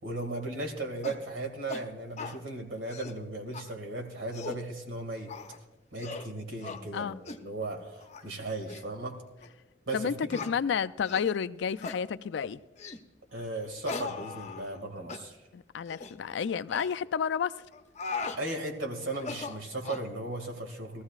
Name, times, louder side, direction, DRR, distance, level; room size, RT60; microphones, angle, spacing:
voice 1, 0.0-5.3 5.9-9.2 9.9-10.4 13.3-15.4 18.4-21.0, right 2 dB, 85° right, 3 dB, 2.1 m, -36 dB
sound 1, 1.0-1.2 1.7-1.8 2.2-2.4 2.8-3.2 3.5-3.6 4.1-4.6 5.3-5.6 6.0-6.3 6.6-6.8 7.3-7.4 8.0-8.2 8.7-8.8 9.4-9.5 10.3-10.5 11.0-11.3 11.8-12.0 12.8-13.0 13.8-14.8 15.1-15.2 15.9-16.1 16.7-16.9 17.7-18.4 19.1-20.1, left 4 dB, 40° left, 0.7 m, -39 dB
voice 2, 9.9-12.6 15.5-17.5, left 7 dB, 65° left, 13 dB, 0.4 m, -31 dB
19.5 x 14.0 x 2.4 m, 1.1 s
head